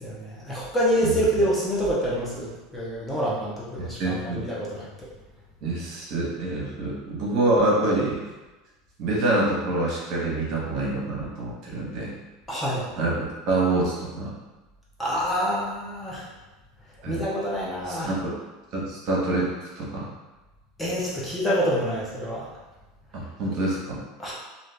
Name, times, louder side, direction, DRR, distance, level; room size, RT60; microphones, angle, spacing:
voice 1, 0.0-5.1 12.5-12.9 15.0-16.3 17.1-18.1 20.8-22.5 24.2-24.3, equal, 10° left, -6 dB, 0.8 m, -27 dB
voice 2, 3.8-4.4 5.6-8.2 9.0-12.1 13.0-13.1 13.5-14.3 17.0-17.2 17.8-18.3 18.7-20.1 23.1-24.0, right 2 dB, 50° right, -5 dB, 1.0 m, -26 dB
2.5 x 2.4 x 3.3 m, 1.1 s
supercardioid pair, 125°, 0 cm